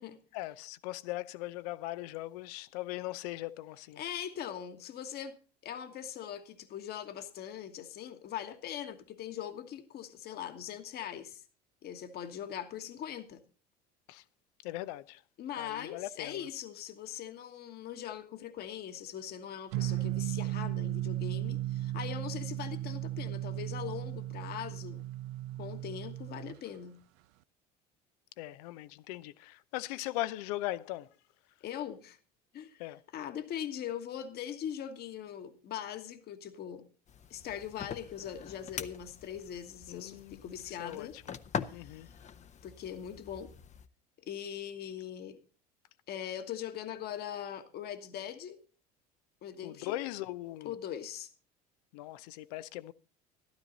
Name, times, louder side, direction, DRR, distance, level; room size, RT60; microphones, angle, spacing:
voice 1, 0.3-4.0 14.1-14.2 14.6-15.2 15.6-16.5 28.4-31.1 32.8-33.0 39.9-40.4 40.7-41.3 41.7-42.1 49.6-50.7 51.9-52.9, left 16 dB, 70° left, 0.6 m, -39 dB
voice 2, 4.0-5.4 5.6-11.4 11.8-13.4 15.4-25.0 25.6-27.0 31.6-32.2 32.5-32.8 33.1-36.8 37.3-41.1 41.7-42.1 42.6-43.5 44.2-45.4 46.1-48.6 49.4-50.0 50.6-51.3, left 9 dB, 50° left, 1.5 m, -41 dB
sound 1, 19.7-26.6, right 15 dB, 65° right, 0.5 m, -36 dB
sound 2, 37.1-43.9, left 7 dB, 35° left, 0.8 m, -44 dB
12.5 x 12.0 x 4.0 m
hypercardioid pair, 75°, 21 cm